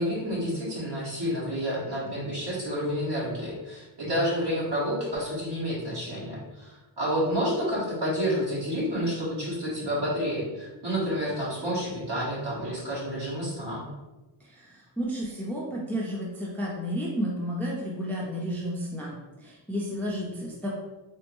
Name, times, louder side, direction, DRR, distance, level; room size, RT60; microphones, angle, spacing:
voice 1, 0.0-13.8, equal, 55° right, -7 dB, 1.5 m, -29 dB
voice 2, 14.4-20.7, equal, 5° left, -4 dB, 0.5 m, -32 dB
3.4 x 2.1 x 3.0 m, 1.1 s
wide cardioid pair, 85°, 50 cm